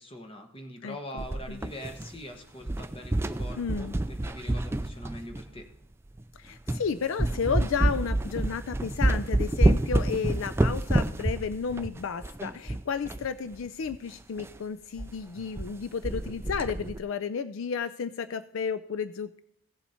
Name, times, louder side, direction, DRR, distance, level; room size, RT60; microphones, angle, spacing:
voice 1, 0.0-5.7, equal, 25° left, 4 dB, 1.2 m, -43 dB
voice 2, 0.8-1.2 1.5-1.6 3.6-3.9 6.4-19.4, left 6 dB, 65° left, 13 dB, 0.4 m, -32 dB
sound 1, 1.2-2.3 2.6-5.6 6.2-6.3 6.7-6.9 7.2-13.3 13.5-13.6 13.9-14.0 14.4-14.6 15.0-15.1 15.4-15.7 16.0-17.0, right 1 dB, 10° right, 0.3 m, -28 dB
16.0 x 7.1 x 4.3 m, 0.74 s
head